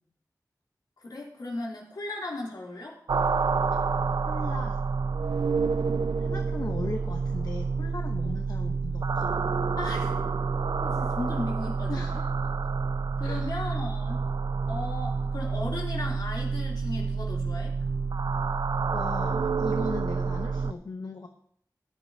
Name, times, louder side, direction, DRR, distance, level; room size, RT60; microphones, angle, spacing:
voice 1, 1.0-3.0 8.2-8.4 9.8-10.1 10.8-12.2 13.2-14.3 14.7-17.8, left 2 dB, 85° left, -3 dB, 3.2 m, -36 dB
sound 1, 3.1-20.7, right 5 dB, 80° right, 0.4 m, -28 dB
voice 2, 4.2-4.8 6.2-9.3 11.9-12.3 13.2-13.5 18.9-21.3, left 3 dB, 65° left, 4 dB, 0.9 m, -37 dB
14.0 x 10.0 x 2.8 m, 0.67 s
wide cardioid pair, 50°, 7 cm